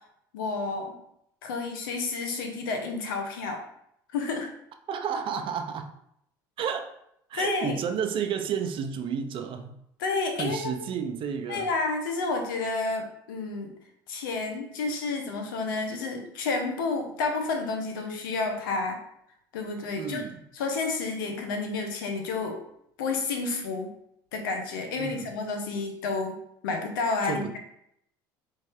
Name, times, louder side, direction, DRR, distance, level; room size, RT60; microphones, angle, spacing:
voice 1, 0.3-0.9 1.4-3.6 4.1-4.5 7.3-7.8 10.0-10.8 11.5-13.7 14.1-19.0 19.5-20.2 20.5-22.6 23.0-23.9 24.3-26.4 26.6-27.6, left 3 dB, 85° left, 4 dB, 0.9 m, -30 dB
voice 2, 4.9-5.9 6.6-6.9 7.3-9.7 10.4-11.7 20.0-20.4 25.0-25.3 27.2-27.6, right 7 dB, 50° right, 7 dB, 0.6 m, -31 dB
4.1 x 3.3 x 3.5 m, 0.74 s
hypercardioid pair, 80°, 11 cm